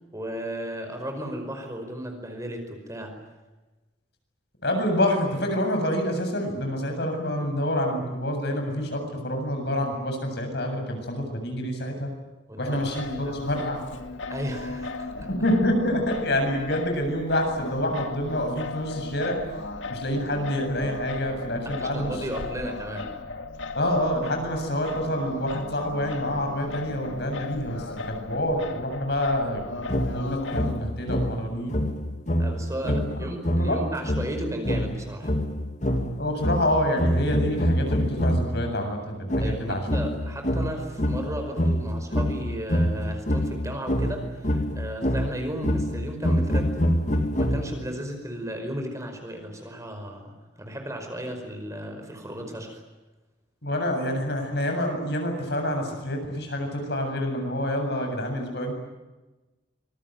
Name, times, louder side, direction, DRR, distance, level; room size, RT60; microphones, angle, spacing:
voice 1, 0.1-3.2 12.5-13.3 14.3-15.3 21.6-23.2 32.4-35.3 39.4-46.9 47.4-52.8, equal, 15° right, 4 dB, 5.1 m, -35 dB
voice 2, 4.6-12.1 12.6-13.8 15.4-19.4 19.9-22.1 23.7-31.9 32.9-33.0 33.5-33.8 36.2-39.8 53.6-58.7, left 1 dB, 60° left, 4 dB, 7.5 m, -27 dB
Singing, 12.7-30.8, left 3 dB, 75° left, 2.4 m, -36 dB
sound 1, 29.9-38.6 39.3-48.0, equal, 40° left, 2.2 m, -26 dB
25.5 x 23.0 x 9.3 m, 1.1 s
head